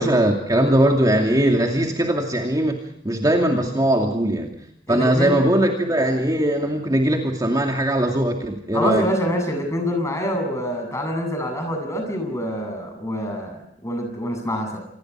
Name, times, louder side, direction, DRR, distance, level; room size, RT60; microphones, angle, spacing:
voice 1, 0.0-2.8 3.0-4.5 4.9-9.0, right 1 dB, 20° right, 1 dB, 2.6 m, -20 dB
voice 2, 4.9-5.5 8.7-14.8, equal, 15° left, 4 dB, 7.9 m, -26 dB
27.5 x 21.0 x 4.7 m, 0.76 s
head